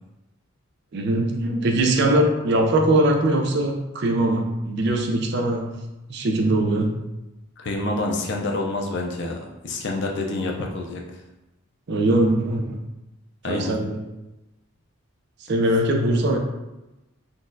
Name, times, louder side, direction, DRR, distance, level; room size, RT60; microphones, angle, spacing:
voice 1, 0.9-5.8 6.1-7.0 11.9-12.8 13.5-14.0 15.4-16.4, right 1 dB, 50° right, 2 dB, 0.4 m, -21 dB
voice 2, 7.6-9.4 9.6-11.0 13.4-13.8, left 2 dB, 55° left, 1 dB, 0.5 m, -27 dB
3.8 x 2.3 x 2.6 m, 0.98 s
head